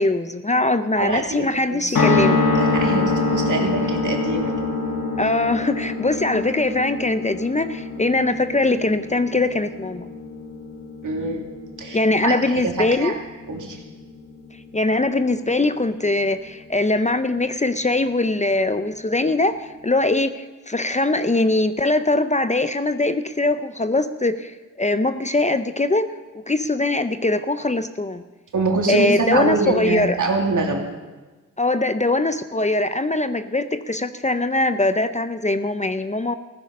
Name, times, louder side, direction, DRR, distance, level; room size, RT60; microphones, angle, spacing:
voice 1, 0.0-2.4 5.2-10.1 11.9-13.2 14.7-28.2 28.9-30.2 31.6-36.4, left 2 dB, 20° left, 10 dB, 0.6 m, -22 dB
voice 2, 1.0-2.0 2.5-4.5 11.0-11.4 11.8-13.1 13.5-13.8 28.5-30.9, right 3 dB, 65° right, 1 dB, 2.7 m, -24 dB
sound 1, 1.9-14.2 14.5-14.6 14.8-14.9, left 3 dB, 80° left, 1.4 m, -25 dB
15.5 x 13.5 x 5.4 m, 1.2 s
cardioid pair, 75°, 33 cm